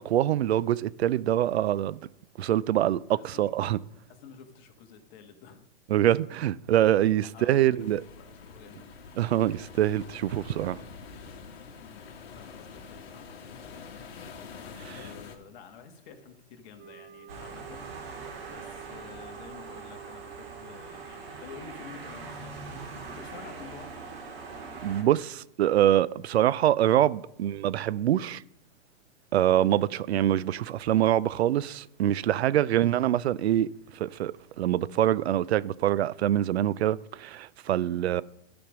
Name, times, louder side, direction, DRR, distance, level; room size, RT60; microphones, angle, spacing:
voice 1, 0.0-2.0 2.4-3.8 5.9-8.0 9.2-10.8 14.8-15.0 24.8-28.4 29.3-38.2, right 12 dB, 80° right, 0.5 m, -25 dB
voice 2, 3.1-3.5 4.1-5.6 7.3-7.9 8.2-8.9 11.8-12.0 12.3-13.9 14.9-17.9 18.5-22.8 23.1-23.9 29.7-29.9 32.5-32.8 37.6-38.2, left 7 dB, 45° left, 1.6 m, -50 dB
sound 1, 7.8-15.4, left 5 dB, 65° left, 1.6 m, -46 dB
sound 2, 16.8-21.7, right 11 dB, 35° right, 2.6 m, -48 dB
sound 3, 17.3-25.0, right 4 dB, 65° right, 2.9 m, -42 dB
12.0 x 5.2 x 6.0 m
hypercardioid pair, 135°, 32 cm